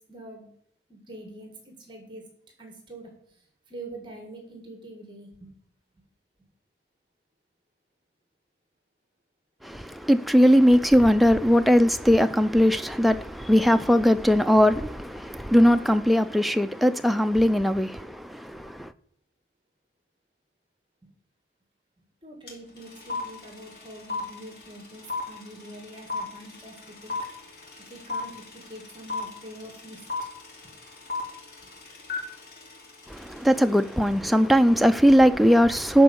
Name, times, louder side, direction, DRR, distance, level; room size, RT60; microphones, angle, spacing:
voice 1, 0.1-0.5 0.9-2.2 2.6-3.1 3.7-5.5 21.0-21.1 22.2-27.2 27.5-27.6 27.9-30.0 30.6-30.7, right 1 dB, 25° right, 1.9 m, -44 dB
voice 2, 9.6-18.9 33.1-36.0, equal, ahead, 0.4 m, -20 dB
sound 1, 22.5-22.6 22.8-33.9, left 3 dB, 60° left, 2.8 m, -34 dB
11.5 x 4.7 x 7.0 m
head